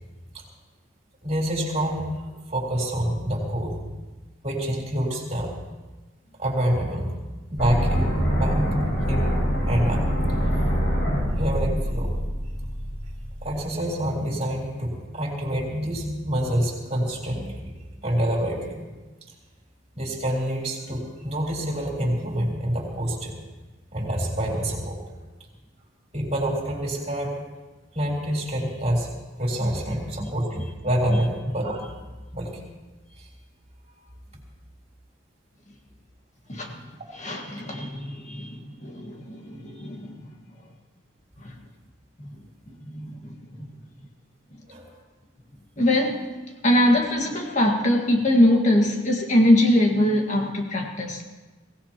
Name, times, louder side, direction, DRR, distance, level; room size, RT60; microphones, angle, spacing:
voice 1, 1.2-3.8 4.4-5.5 6.4-7.2 7.5-8.1 8.4-8.8 9.1-9.3 9.7-10.1 11.4-12.1 13.4-17.7 18.0-18.8 19.9-23.4 23.9-25.0 26.1-27.4 27.9-29.1 29.4-31.9 32.3-32.6 33.2-33.3 44.7-44.8, right 1 dB, 35° right, -2 dB, 3.8 m, -27 dB
sound 1, 7.6-13.6, equal, 70° left, 6.5 m, -25 dB
voice 2, 29.6-30.3 36.5-36.8 37.1-40.2 41.4-41.5 42.9-43.7 45.8-46.3 46.6-51.2, left 1 dB, 40° left, 1 dB, 1.8 m, -22 dB
23.5 x 17.0 x 3.0 m, 1.2 s
head